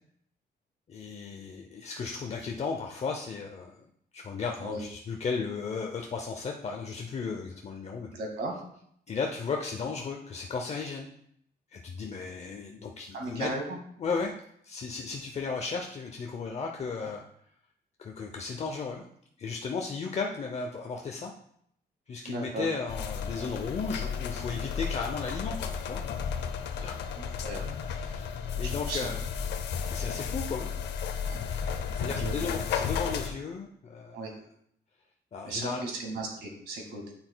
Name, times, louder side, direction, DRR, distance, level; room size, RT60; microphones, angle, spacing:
voice 1, 0.9-3.8 4.1-8.1 9.1-11.1 11.7-13.5 14.0-14.3 14.6-17.2 18.0-19.0 19.4-21.3 22.1-26.0 26.8-27.0 27.9-28.3 28.6-29.2 29.9-30.7 31.9-34.4 35.3-35.9, left 5 dB, 40° left, 2 dB, 0.6 m, -35 dB
voice 2, 8.1-8.6 13.1-13.8 17.0-17.1 22.3-22.7 27.1-27.6 28.6-29.1 31.3-31.4 32.1-32.5 34.1-34.3 35.4-37.1, right 2 dB, 90° right, 0 dB, 1.9 m, -36 dB
sound 1, 22.9-33.3, left 6 dB, 90° left, 0.6 m, -33 dB
8.6 x 5.9 x 2.2 m, 0.70 s
cardioid pair, 110°, 17 cm